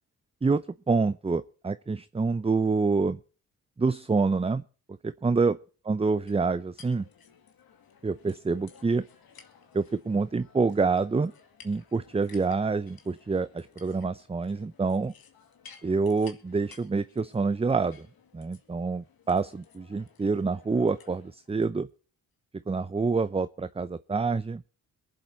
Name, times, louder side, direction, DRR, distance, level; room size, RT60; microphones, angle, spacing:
voice 1, 0.4-3.2 3.8-4.6 5.0-5.6 5.9-7.1 8.0-9.1 9.7-11.3 11.6-15.1 15.8-18.1 18.3-21.9 22.7-24.6, right 4 dB, 15° right, 14 dB, 0.6 m, -27 dB
sound 1, 6.3-21.7, left 6 dB, 75° left, 2.1 m, -56 dB
22.0 x 7.7 x 5.3 m, 0.39 s
cardioid pair, 65°, 36 cm